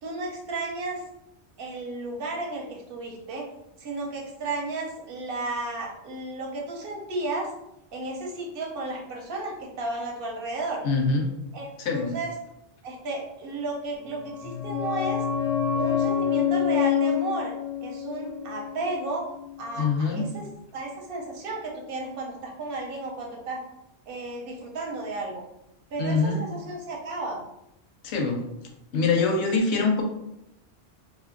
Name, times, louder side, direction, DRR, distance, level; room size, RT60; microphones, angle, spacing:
voice 1, 0.0-1.0 1.6-3.5 3.8-7.5 7.9-10.8 11.5-12.3 12.8-15.3 15.7-17.5 17.8-19.3 19.6-20.5 20.7-23.6 24.1-25.4 25.9-27.4, right 2 dB, 60° right, 0 dB, 0.8 m, -33 dB
voice 2, 10.8-11.3 11.8-12.2 19.8-20.2 26.0-26.4 28.0-28.4 28.9-30.0, left 4 dB, 80° left, 2 dB, 0.9 m, -24 dB
sound 1, 14.0-19.5 19.7-19.8, left 8 dB, 55° left, 0.4 m, -27 dB
2.6 x 2.4 x 2.5 m, 0.84 s
omnidirectional pair, 1.1 m